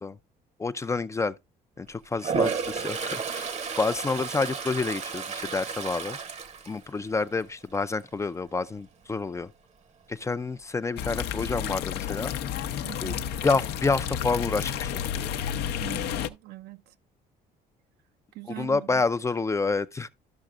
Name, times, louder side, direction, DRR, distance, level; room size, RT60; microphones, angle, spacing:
voice 1, 0.6-1.3 1.8-3.5 3.8-6.2 6.7-9.5 10.1-12.3 13.0-13.2 13.4-15.0 18.6-20.1, left 4 dB, 15° left, 0.4 m, -28 dB
Toilet flush, 2.1-7.3 7.7-8.1 12.6-12.7 13.0-13.7, right 5 dB, 40° right, 0.8 m, -32 dB
sound 1, 11.0-16.3, left 9 dB, 80° left, 0.6 m, -31 dB
voice 2, 12.8-13.3 15.8-16.9 18.3-19.0, right 18 dB, 75° right, 0.5 m, -42 dB
13.0 x 5.7 x 2.4 m
cardioid pair, 110°, 17 cm